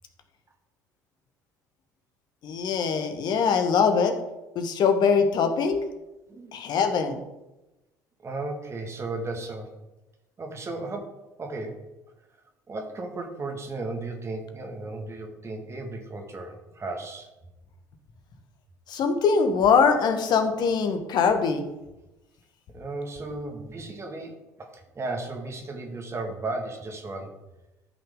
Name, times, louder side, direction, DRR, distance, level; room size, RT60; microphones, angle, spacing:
voice 1, 2.4-4.1 4.5-5.8 6.5-7.2 18.9-21.6, left 5 dB, 50° left, 6 dB, 1.4 m, -22 dB
voice 2, 8.2-9.7 10.4-11.8 12.7-17.3 22.7-27.4, right 2 dB, 30° right, 3 dB, 2.1 m, -35 dB
14.0 x 5.9 x 3.8 m, 0.99 s
figure-of-eight pair, 60°, 10 cm